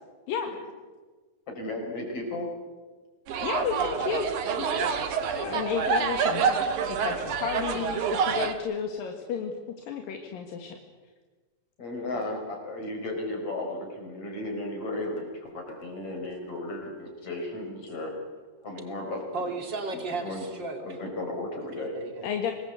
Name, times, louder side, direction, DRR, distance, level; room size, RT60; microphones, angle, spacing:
voice 1, 1.5-2.5 5.4-5.6 11.8-18.1 18.6-19.5 19.9-20.4 20.8-21.9, left 2 dB, 40° left, 2 dB, 6.5 m, -35 dB
sound 1, 3.3-8.5, right 6 dB, 65° right, 3.1 m, -27 dB
voice 2, 3.4-4.9 5.3-9.5 9.9-10.8 22.2-22.5, left 7 dB, 80° left, 3 dB, 3.5 m, -32 dB
voice 3, 19.3-21.0 21.8-22.3, right 3 dB, 35° right, 5 dB, 3.2 m, -34 dB
26.0 x 20.0 x 8.2 m, 1.4 s
omnidirectional pair, 4.0 m